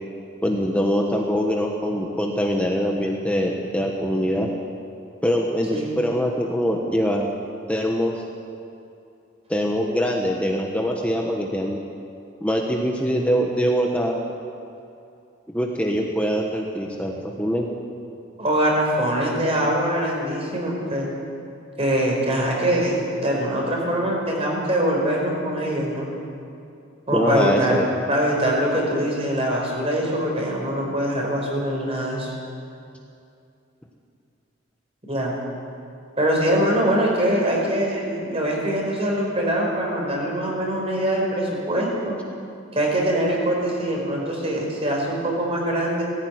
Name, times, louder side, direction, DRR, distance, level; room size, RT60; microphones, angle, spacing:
voice 1, 0.4-4.5 5.2-7.3 7.7-8.2 9.5-11.8 12.4-14.2 15.5-17.7 27.1-27.9, equal, 5° left, 0 dB, 1.3 m, -23 dB
voice 2, 18.4-21.1 21.8-26.1 27.1-27.8 28.1-32.3 35.1-35.3 36.2-42.2 42.7-46.0, right 1 dB, 30° right, -1 dB, 5.0 m, -23 dB
18.5 x 15.5 x 9.5 m, 2.6 s
head